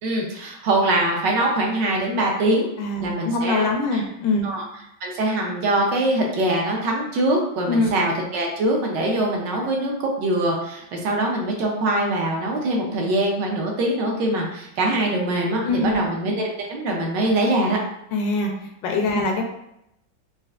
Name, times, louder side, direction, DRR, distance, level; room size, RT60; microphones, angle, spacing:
voice 1, 0.0-2.7 3.0-4.0 4.4-4.6 5.0-17.8 19.1-19.2, right 1 dB, 75° right, 0 dB, 1.3 m, -23 dB
voice 2, 2.8-4.5 7.7-7.9 15.6-16.1 18.1-18.5 18.8-19.4, left 3 dB, 75° left, 2 dB, 1.3 m, -23 dB
4.2 x 2.4 x 2.4 m, 0.80 s
omnidirectional pair, 2.1 m